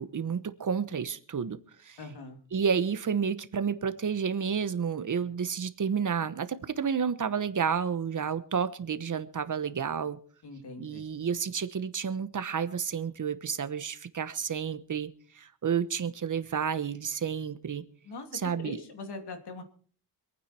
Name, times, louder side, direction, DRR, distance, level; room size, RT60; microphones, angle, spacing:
voice 1, 0.0-2.0 2.5-10.2 10.8-15.1 15.3-17.8 18.3-18.8, right 7 dB, 45° right, 12 dB, 1.1 m, -30 dB
voice 2, 2.0-2.4 10.4-11.0 18.0-19.6, left 3 dB, 65° left, 6 dB, 2.8 m, -41 dB
25.5 x 9.4 x 4.3 m, 0.43 s
wide cardioid pair, 125°, 42 cm